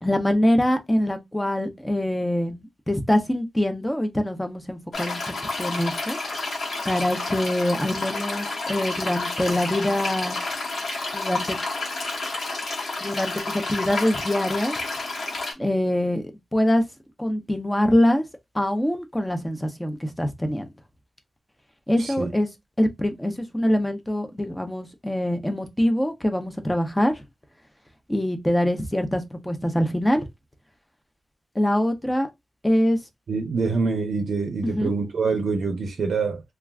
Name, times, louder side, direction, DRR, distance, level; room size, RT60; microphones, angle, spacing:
voice 1, 0.0-5.2 5.6-6.2 6.8-10.4 11.1-11.6 13.0-14.7 15.6-16.2 16.5-16.8 17.2-18.2 18.5-20.7 21.9-22.5 22.8-27.1 28.1-30.3 31.5-32.3 32.6-33.0 34.6-34.9, left 1 dB, 10° left, 0.6 m, -24 dB
sound 1, 4.9-15.5, left 3 dB, 65° left, 1.1 m, -30 dB
voice 2, 22.0-22.3 33.3-36.4, right 4 dB, 85° right, 0.5 m, -25 dB
2.4 x 2.3 x 3.3 m
wide cardioid pair, 90°, 0 cm